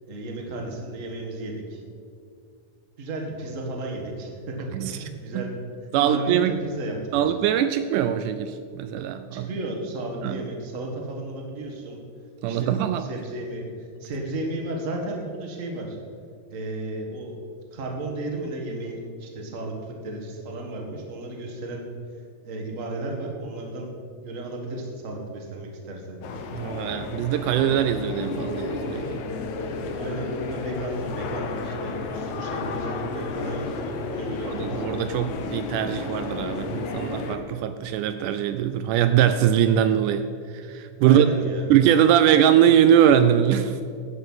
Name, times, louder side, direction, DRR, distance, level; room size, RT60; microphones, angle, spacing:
voice 1, 0.1-1.8 3.0-4.7 5.0-5.5 5.8-7.2 9.3-12.0 12.4-16.0 16.5-17.4 17.7-21.9 22.4-24.0 24.2-26.4 30.0-34.8 41.0-41.7, right 2 dB, 35° right, 0 dB, 1.4 m, -33 dB
voice 2, 4.7-5.0 5.4-5.5 5.9-6.5 7.1-9.5 10.2-10.4 12.4-13.0 26.5-29.2 34.6-40.3 40.5-41.3 41.7-43.8, right 10 dB, 80° right, 10 dB, 1.9 m, -21 dB
sound 1, 26.2-37.4, left 3 dB, 70° left, 2.1 m, -32 dB
12.5 x 8.7 x 5.6 m, 2.4 s
omnidirectional pair, 3.9 m